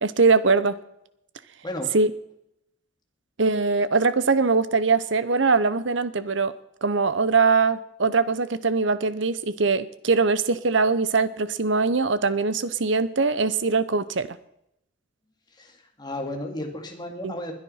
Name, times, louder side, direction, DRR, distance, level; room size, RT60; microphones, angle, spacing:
voice 1, 0.0-0.8 1.9-2.1 3.4-6.5 6.8-14.4 17.2-17.3, right 4 dB, 65° right, 14 dB, 0.9 m, -22 dB
voice 2, 15.6-17.5, left 1 dB, 20° left, 2 dB, 2.4 m, -33 dB
21.0 x 9.8 x 5.7 m, 0.79 s
head